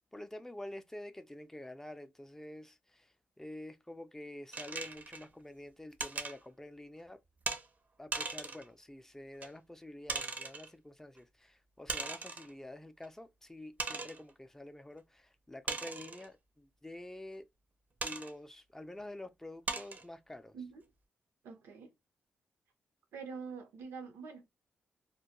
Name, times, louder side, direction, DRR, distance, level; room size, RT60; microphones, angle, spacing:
voice 1, 0.0-7.2 8.0-17.5 18.0-20.5, left 1 dB, 10° left, 0.4 m, -48 dB
sound 1, 4.5-5.3 6.0-6.4 7.5-7.6 8.1-8.7 9.4-9.5 10.1-10.7 11.9-12.5 13.0-13.1 13.8-14.2 15.7-16.3 18.0-18.3 19.0-19.1 19.7-20.0, right 4 dB, 40° right, 0.5 m, -38 dB
voice 2, 21.4-21.9 23.1-24.5, right 5 dB, 90° right, 0.7 m, -45 dB
2.2 x 2.1 x 2.9 m
cardioid pair, 80°, 4 cm